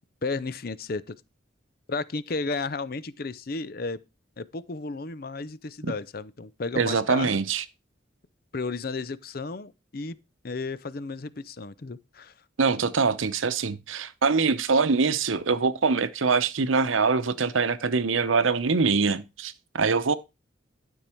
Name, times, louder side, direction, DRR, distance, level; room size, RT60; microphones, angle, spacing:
voice 1, 0.2-1.2 1.9-4.0 4.4-7.4 8.5-10.2 10.4-12.3, left 3 dB, 50° left, 0.6 m, -33 dB
voice 2, 6.8-7.6 12.6-20.1, right 4 dB, 90° right, 0.8 m, -24 dB
12.0 x 5.5 x 4.5 m
head